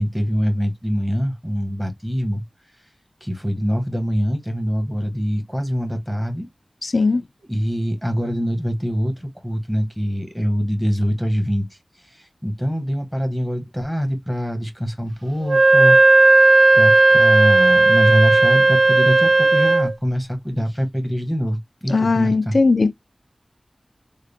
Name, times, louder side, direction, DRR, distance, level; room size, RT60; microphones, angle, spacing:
voice 1, 0.0-2.4 3.2-6.5 7.5-11.7 12.1-16.0 16.7-22.6, equal, 5° right, 1.4 m, -23 dB
voice 2, 6.8-7.2 21.9-22.9, left 3 dB, 75° left, 0.3 m, -18 dB
Wind instrument woodwind instrument, 15.4-19.9, right 2 dB, 55° right, 0.4 m, -14 dB
3.6 x 2.3 x 3.3 m
wide cardioid pair, 65°, 0 cm